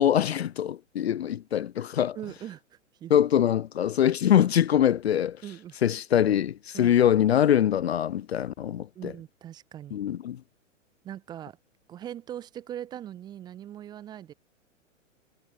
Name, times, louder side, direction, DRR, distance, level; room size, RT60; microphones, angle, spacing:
voice 1, 0.0-2.2 3.1-5.4 5.8-9.1 9.9-10.4, left 10 dB, 55° left, 0.5 m, -23 dB
voice 2, 2.1-3.1 5.4-5.8 6.7-7.0 8.9-10.0 11.0-11.6 11.9-14.3, right 11 dB, 10° right, 0.6 m, -40 dB
figure-of-eight pair, 110°, 38 cm